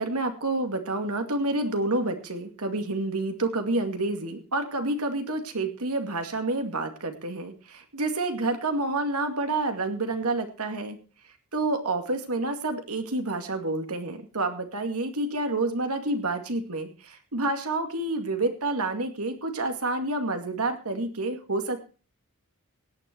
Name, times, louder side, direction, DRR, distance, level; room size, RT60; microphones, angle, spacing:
voice 1, 0.0-11.0 11.5-21.8, right 2 dB, 75° right, 5 dB, 2.3 m, -29 dB
17.0 x 9.6 x 4.5 m, 0.36 s
head